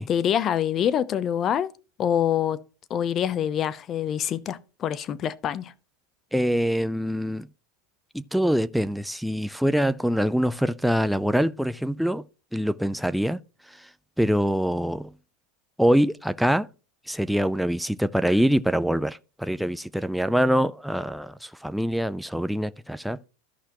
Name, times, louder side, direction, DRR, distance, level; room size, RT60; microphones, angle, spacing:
voice 1, 0.1-1.7 2.0-2.6 2.9-5.7, left 9 dB, 35° left, 0.7 m, -25 dB
voice 2, 6.3-7.5 8.1-12.2 12.5-13.4 13.8-13.9 14.2-15.1 15.8-16.7 17.1-23.2, equal, ahead, 0.4 m, -24 dB
14.0 x 5.7 x 3.0 m
supercardioid pair, 120°, 0 cm